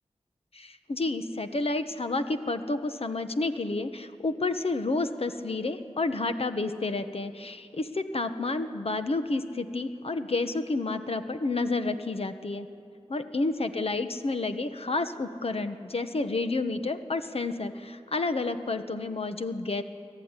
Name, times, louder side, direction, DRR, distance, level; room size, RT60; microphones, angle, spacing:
voice 1, 0.5-12.7 13.1-19.8, left 3 dB, 60° left, 8 dB, 1.3 m, -30 dB
24.0 x 15.5 x 9.8 m, 2.5 s
wide cardioid pair, 60°, 11 cm